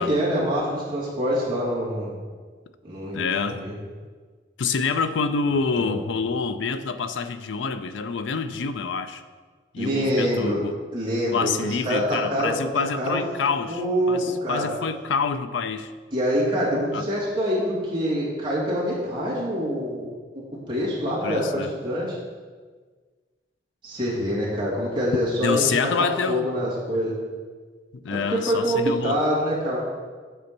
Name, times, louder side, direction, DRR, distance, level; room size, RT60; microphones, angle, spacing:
voice 1, 0.0-2.2 2.8-3.8 5.8-6.0 9.8-10.6 10.9-11.5 11.8-13.2 13.7-14.7 16.1-20.1 20.3-22.1 23.8-25.7 26.0-27.2 28.1-29.8, equal, 25° right, -7 dB, 2.2 m, -25 dB
voice 2, 3.1-3.7 4.6-9.2 9.7-10.8 11.3-13.8 14.1-15.9 16.9-17.1 21.2-21.7 25.4-26.5 27.9-29.2, left 5 dB, 85° left, 11 dB, 0.4 m, -27 dB
6.8 x 4.4 x 6.7 m, 1.5 s
head